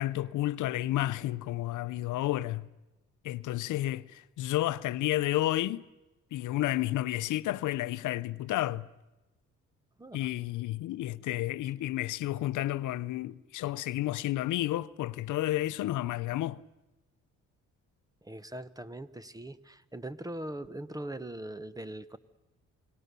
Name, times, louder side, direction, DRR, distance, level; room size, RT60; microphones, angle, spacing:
voice 1, 0.0-2.7 3.2-5.8 6.3-8.9 10.1-16.6, left 15 dB, 80° left, 0.7 m, -31 dB
voice 2, 18.2-22.2, right 1 dB, 10° right, 1.0 m, -41 dB
28.5 x 19.5 x 6.9 m
cardioid pair, 90°, 30 cm